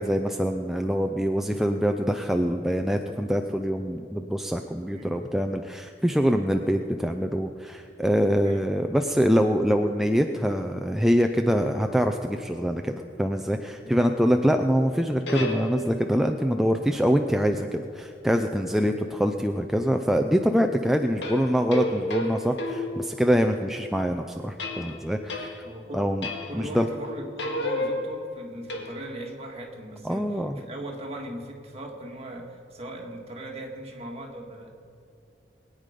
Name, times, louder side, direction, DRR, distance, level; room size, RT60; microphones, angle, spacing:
voice 1, 0.0-25.6 25.9-26.3 26.5-26.9 30.0-30.6, equal, ahead, 5 dB, 0.5 m, -24 dB
sound 1, 14.9-16.2 21.2-23.6 24.6-25.8 26.2-26.8 27.0-29.3, left 1 dB, 85° left, 1.8 m, -33 dB
voice 2, 25.6-26.1 26.5-34.7, right 1 dB, 35° right, 0 dB, 2.0 m, -39 dB
22.0 x 9.2 x 5.2 m, 2.6 s
head